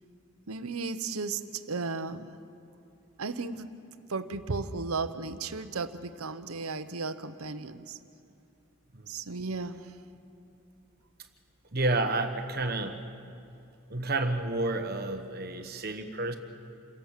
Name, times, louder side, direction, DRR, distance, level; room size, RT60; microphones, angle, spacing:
voice 1, 0.5-2.3 3.2-3.7 4.1-8.0 9.1-9.9, right 4 dB, 85° right, 10 dB, 1.0 m, -35 dB
voice 2, 11.7-13.0 13.9-16.4, right 2 dB, 45° right, 6 dB, 1.4 m, -30 dB
28.0 x 17.5 x 7.5 m, 2.6 s
head